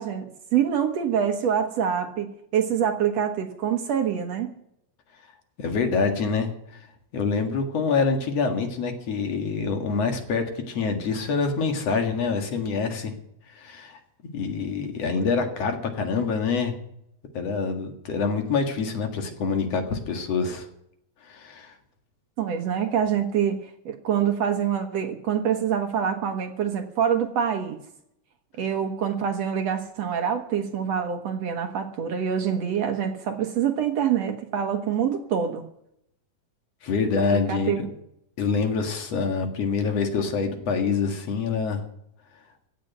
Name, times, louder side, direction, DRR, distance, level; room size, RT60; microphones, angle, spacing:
voice 1, 0.0-4.5 15.1-15.2 22.4-27.8 28.6-35.7 37.3-37.9, right 8 dB, 60° right, 5 dB, 1.9 m, -26 dB
voice 2, 5.6-6.5 7.1-13.1 13.5-16.7 17.3-20.7 21.2-21.7 36.8-37.8 38.4-41.8, left 5 dB, 50° left, 5 dB, 2.6 m, -26 dB
16.0 x 7.9 x 9.4 m, 0.74 s
omnidirectional pair, 4.2 m